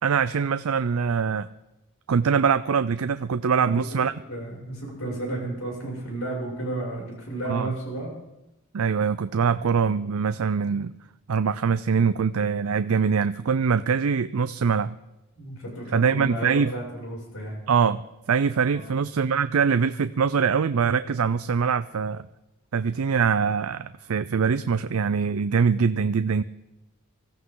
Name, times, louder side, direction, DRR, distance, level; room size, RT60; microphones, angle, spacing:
voice 1, 0.0-1.5 2.1-4.1 7.5-7.7 8.7-10.9 11.3-15.0 15.9-16.7 17.7-18.0 18.3-22.2 22.7-26.4, right 6 dB, 85° right, 12 dB, 0.5 m, -23 dB
voice 2, 4.3-8.1 15.4-17.6 18.7-18.9, right 2 dB, 80° left, -2 dB, 6.8 m, -32 dB
24.5 x 15.0 x 3.9 m, 0.96 s
head